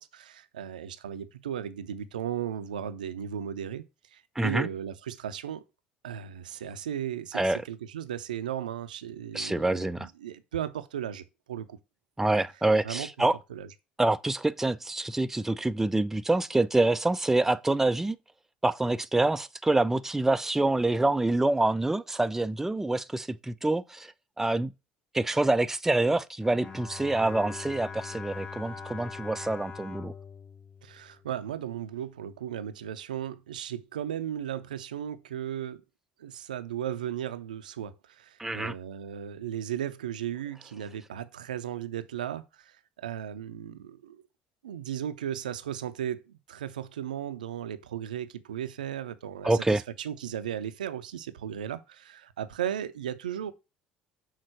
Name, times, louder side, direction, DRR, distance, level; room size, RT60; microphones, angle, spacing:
voice 1, 0.0-3.8 4.1-5.6 6.0-11.8 12.8-13.7 30.8-35.8 36.2-44.2 44.6-53.5, right 10 dB, 75° right, 0.6 m, -36 dB
voice 2, 4.4-4.7 7.3-7.6 9.3-10.1 12.2-13.4 14.0-18.2 18.6-24.7 25.1-30.1 38.4-38.7 49.4-49.8, right 2 dB, 10° right, 0.5 m, -26 dB
Bowed string instrument, 26.4-31.7, left 5 dB, 25° left, 1.5 m, -42 dB
6.4 x 3.9 x 6.3 m
figure-of-eight pair, 60°, 4 cm